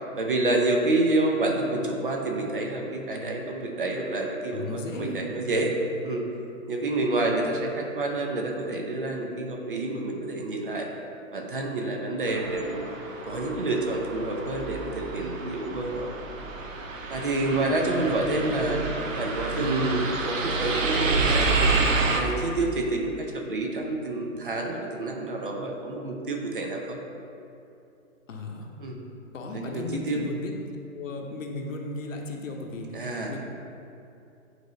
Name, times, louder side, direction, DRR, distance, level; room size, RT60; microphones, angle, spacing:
voice 1, 0.2-5.7 6.0-6.2 6.7-10.9 11.3-12.9 13.2-16.1 17.1-18.8 19.2-21.5 22.1-27.0 28.8-29.0 29.5-30.3 32.9-33.4, right 2 dB, 40° right, 1 dB, 0.6 m, -28 dB
voice 2, 4.5-5.6 17.4-17.7 17.9-19.0 19.6-19.9 28.3-28.7 29.3-30.6 30.9-32.9 33.3-33.4, left 2 dB, 65° left, 2 dB, 1.0 m, -36 dB
sound 1, 12.3-22.2, right 3 dB, 70° right, 0.9 m, -29 dB
9.1 x 3.2 x 3.9 m, 2.7 s
hypercardioid pair, 170°, 41 cm